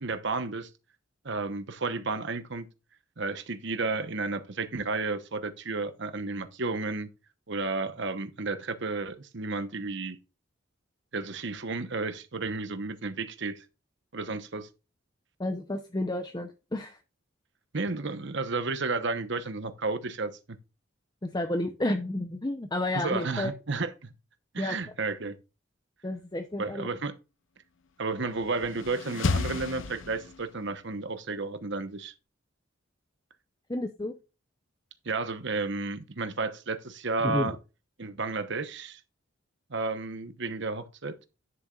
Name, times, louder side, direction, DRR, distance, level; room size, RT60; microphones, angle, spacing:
voice 1, 0.0-0.7 1.2-2.7 3.2-7.1 7.5-10.2 11.1-13.6 14.1-14.7 17.7-20.6 22.9-24.1 24.5-25.3 26.6-27.1 28.0-32.1 35.0-37.6 38.0-39.0 39.7-41.1, right 3 dB, 60° right, 1.1 m, -32 dB
voice 2, 15.4-17.0 21.2-23.5 24.6-24.8 26.0-26.9 33.7-34.1 37.2-37.5, left 1 dB, 20° left, 0.7 m, -31 dB
sound 1, 28.3-30.7, left 4 dB, 70° left, 0.7 m, -32 dB
11.0 x 6.8 x 2.4 m
head